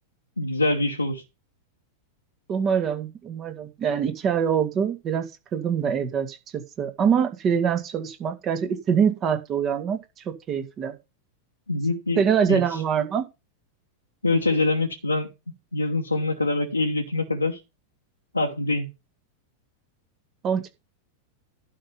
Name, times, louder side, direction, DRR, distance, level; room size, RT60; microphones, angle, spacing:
voice 1, 0.4-1.2 11.7-12.2 12.5-12.6 14.2-15.3 15.7-17.6 18.3-18.9, left 2 dB, 85° left, 1.3 m, -24 dB
voice 2, 2.5-5.3 5.5-10.0 10.3-11.0 12.2-13.2 20.4-20.7, right 7 dB, 30° right, 1.9 m, -24 dB
11.5 x 5.4 x 5.7 m
figure-of-eight pair, 90°, 0 cm